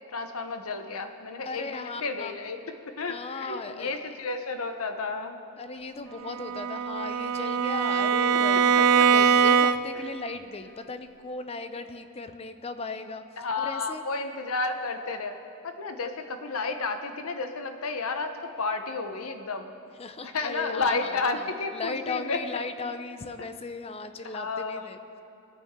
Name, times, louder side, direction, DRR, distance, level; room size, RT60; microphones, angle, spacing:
voice 1, 0.1-2.6 3.0-5.4 13.4-15.4 15.6-19.7 20.2-22.4 24.2-24.8, left 3 dB, 75° left, 7 dB, 0.8 m, -31 dB
voice 2, 1.4-2.4 3.1-4.0 5.6-13.2 13.6-14.0 20.0-25.0, left 3 dB, 25° left, 9 dB, 0.5 m, -37 dB
Bowed string instrument, 6.2-10.1, right 6 dB, 75° right, 0.4 m, -22 dB
21.0 x 8.8 x 3.6 m, 2.7 s
head